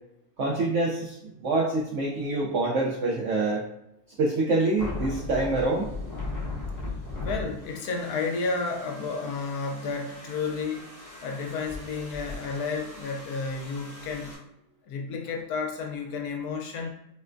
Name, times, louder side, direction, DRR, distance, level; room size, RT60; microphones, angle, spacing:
voice 1, 0.4-1.2 1.4-3.6 4.2-5.9, right 2 dB, 70° right, -3 dB, 0.7 m, -26 dB
sound 1, 4.8-14.3, left 3 dB, 20° left, 0.5 m, -38 dB
voice 2, 7.2-10.9 11.2-14.3 14.9-16.9, left 4 dB, 75° left, 2 dB, 1.0 m, -31 dB
4.4 x 2.1 x 2.5 m, 0.83 s
omnidirectional pair, 1.8 m